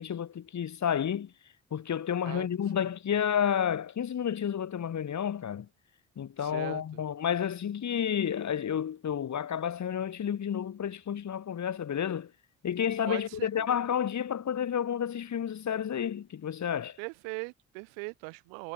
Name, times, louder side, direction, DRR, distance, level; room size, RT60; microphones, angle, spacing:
voice 1, 0.0-1.3 1.7-5.7 6.2-12.3 12.6-17.0, left 8 dB, 55° left, 3.0 m, -31 dB
voice 2, 6.4-7.0 13.1-13.7 17.0-18.7, right 40 dB or more, 80° right, 2.7 m, -40 dB
hypercardioid pair, 40°, 35 cm